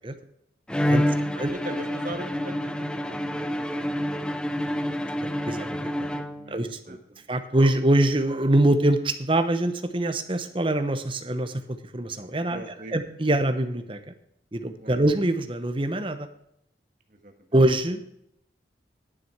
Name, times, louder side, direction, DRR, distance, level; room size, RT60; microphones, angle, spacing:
Bowed string instrument, 0.7-6.7, equal, 5° left, 0.4 m, -28 dB
voice 1, 0.8-3.8 6.3-6.6 6.9-7.2 12.5-12.9 14.8-15.0 17.1-17.3, right 1 dB, 45° right, 5 dB, 1.5 m, -40 dB
voice 2, 5.2-6.2 6.5-7.0 7.3-12.6 12.9-14.0 14.5-16.3 17.5-18.0, right 1 dB, 30° right, 9 dB, 0.9 m, -24 dB
10.0 x 9.5 x 4.6 m, 0.76 s
head